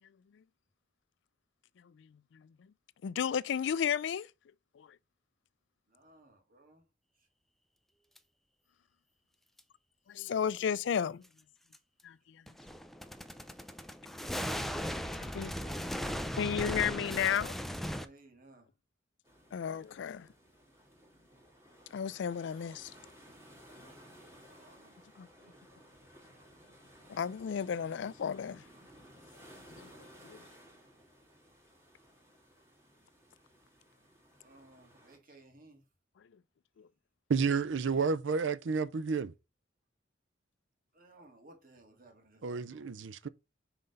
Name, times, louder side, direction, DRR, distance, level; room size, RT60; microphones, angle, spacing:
voice 1, 3.0-4.3 4.8-4.9 10.1-11.2 12.0-12.2 15.2-15.5 16.4-17.5 19.5-20.3 21.9-22.9 25.2-25.3 27.1-28.6 29.8-29.9 30.2-30.4, left 8 dB, 65° left, 0.3 m, -33 dB
voice 2, 5.9-6.8 14.6-16.4 17.7-18.7 24.5-25.0 25.3-25.6 29.9-30.1 30.4-30.5 34.4-35.8 41.0-42.9, right 2 dB, 50° right, 1.9 m, -59 dB
sound 1, 8.2-8.3 9.6-9.7 11.7-11.8 12.5-18.1, equal, ahead, 0.4 m, -38 dB
sound 2, 19.2-35.2, equal, 15° right, 2.3 m, -58 dB
voice 3, 37.3-39.3 42.4-43.3, right 5 dB, 70° right, 0.5 m, -31 dB
5.8 x 3.8 x 5.3 m
head